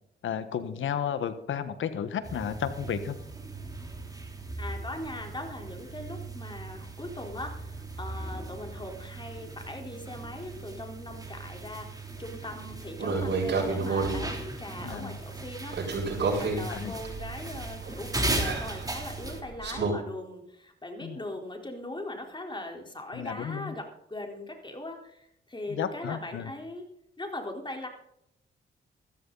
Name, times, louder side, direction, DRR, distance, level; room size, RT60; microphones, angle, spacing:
voice 1, 0.2-3.2 14.8-15.2 16.7-16.9 21.0-21.2 23.1-23.7 25.7-26.5, left 8 dB, 75° left, 11 dB, 1.5 m, -33 dB
sound 1, 2.2-19.4, right 2 dB, 20° right, 3.4 m, -38 dB
voice 2, 4.6-26.8 27.2-27.9, left 1 dB, 25° left, 2 dB, 4.1 m, -40 dB
sound 2, 13.0-14.2 15.7-19.9, right 4 dB, 60° right, 7.0 m, -30 dB
14.0 x 14.0 x 4.1 m, 0.74 s
cardioid pair, 65°, 20 cm